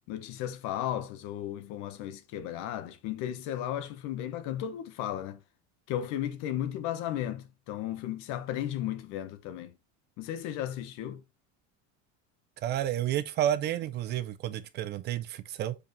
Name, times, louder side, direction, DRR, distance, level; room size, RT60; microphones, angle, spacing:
voice 1, 0.1-5.4 5.9-9.7 10.2-11.2, left 11 dB, 60° left, 1.1 m, -35 dB
voice 2, 12.6-15.8, right 11 dB, 35° right, 0.4 m, -30 dB
7.2 x 4.9 x 3.1 m
cardioid pair, 175°, 32 cm